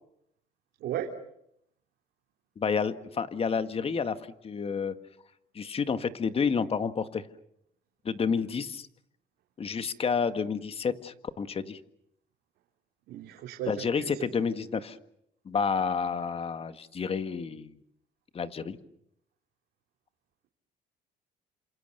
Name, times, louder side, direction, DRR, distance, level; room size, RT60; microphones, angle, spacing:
voice 1, 2.6-4.9 5.6-7.3 8.1-8.9 9.6-11.8 13.7-15.0 15.5-17.8 18.3-18.8, left 6 dB, 35° left, 10 dB, 1.8 m, -30 dB
voice 2, 13.1-14.3, right 11 dB, 75° right, 2 dB, 3.2 m, -35 dB
29.5 x 27.0 x 6.8 m, 0.78 s
cardioid pair, 110°, 17 cm